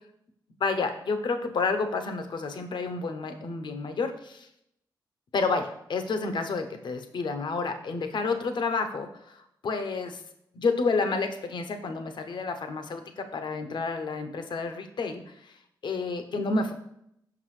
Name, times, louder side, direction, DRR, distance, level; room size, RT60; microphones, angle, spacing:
voice 1, 0.6-4.5 5.3-10.2 10.5-15.6 15.8-16.7, left 4 dB, 70° left, 7 dB, 0.7 m, -30 dB
5.9 x 5.5 x 3.2 m, 0.75 s
cardioid pair, 70°, 8 cm